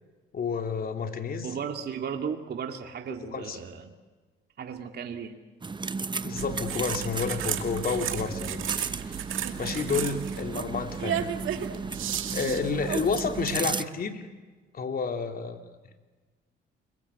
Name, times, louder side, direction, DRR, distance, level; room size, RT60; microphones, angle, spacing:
voice 1, 0.3-1.5 3.2-3.6 6.2-8.7 9.0-9.3 9.6-11.3 12.3-14.2 14.7-15.7, left 5 dB, 50° left, 5 dB, 3.2 m, -30 dB
voice 2, 1.4-3.9 4.6-5.4 9.8-10.0 12.3-12.6, right 7 dB, 55° right, 4 dB, 2.4 m, -36 dB
sound 1, 5.6-13.8, right 4 dB, 25° right, 0.9 m, -35 dB
sound 2, 6.4-13.6, right 11 dB, 85° right, 2.3 m, -34 dB
29.5 x 22.0 x 8.4 m, 1.3 s
cardioid pair, 90°, 20 cm